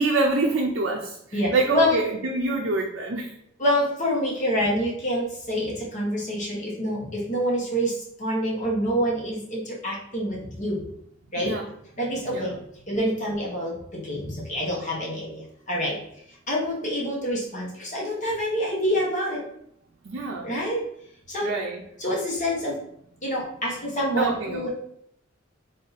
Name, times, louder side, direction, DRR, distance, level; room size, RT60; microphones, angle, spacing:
voice 1, 0.0-3.3 11.4-11.6 12.3-12.5 20.0-20.5 21.4-21.8 24.2-24.7, right 3 dB, 70° right, 0 dB, 0.5 m, -26 dB
voice 2, 1.3-1.9 3.6-10.8 11.3-11.6 12.0-12.5 12.9-16.0 16.5-19.4 20.4-20.8 21.3-21.5 22.0-22.8 23.2-24.7, equal, 40° left, -4 dB, 1.1 m, -27 dB
3.7 x 2.7 x 3.9 m, 0.71 s
head